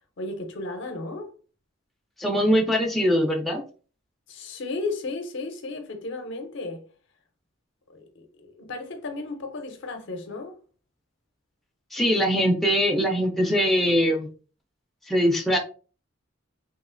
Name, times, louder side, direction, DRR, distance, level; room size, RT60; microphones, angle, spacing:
voice 1, 0.2-1.3 4.3-6.8 7.9-10.6, left 3 dB, 60° left, 0.6 m, -34 dB
voice 2, 2.2-3.6 11.9-14.3 15.1-15.6, equal, ahead, 0.4 m, -22 dB
3.0 x 2.4 x 2.5 m
head